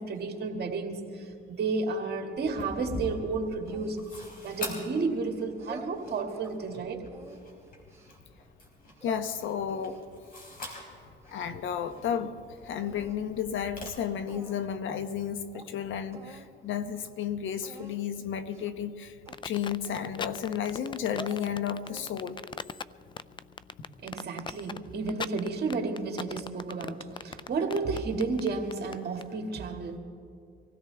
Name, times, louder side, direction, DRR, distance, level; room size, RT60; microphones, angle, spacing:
voice 1, 0.0-7.1 24.0-30.0, right 4 dB, 55° right, 2 dB, 2.1 m, -32 dB
sound 1, 2.4-13.9, left 2 dB, 45° left, 4.1 m, -45 dB
sound 2, 3.7-5.0 5.5-6.6 7.1-8.2 8.7-9.3 9.7-11.5 11.7-12.4 12.8-13.2 13.9-14.0 14.3-14.8 15.2-15.3 15.5-15.7 16.1-16.5 16.8-17.1 17.6-18.0 18.5-18.8 19.3-20.4 20.9-21.4 21.8-22.4, right 2 dB, 15° right, 2.6 m, -48 dB
voice 2, 9.0-10.0 10.9-11.0 11.3-19.2 19.4-22.4, left 8 dB, 75° left, 10 dB, 1.0 m, -32 dB
sound 3, 19.3-29.3, left 5 dB, 25° left, 0.4 m, -39 dB
24.5 x 16.5 x 3.5 m, 2.4 s
cardioid pair, 90°, 20 cm